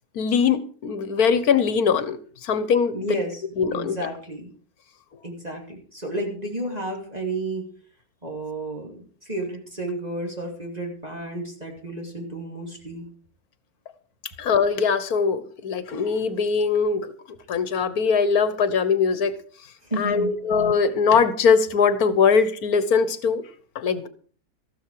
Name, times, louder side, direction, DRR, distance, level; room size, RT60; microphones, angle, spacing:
voice 1, 0.2-3.0 3.6-4.0 14.4-17.1 17.5-19.3 20.0-23.4 23.8-24.1, left 6 dB, 70° left, 14 dB, 1.6 m, -21 dB
voice 2, 2.9-3.4 3.7-4.5 5.2-7.7 8.2-13.1 19.8-20.4, right 1 dB, 25° right, 1 dB, 2.7 m, -32 dB
14.5 x 12.5 x 4.8 m, 0.42 s
omnidirectional pair, 1.7 m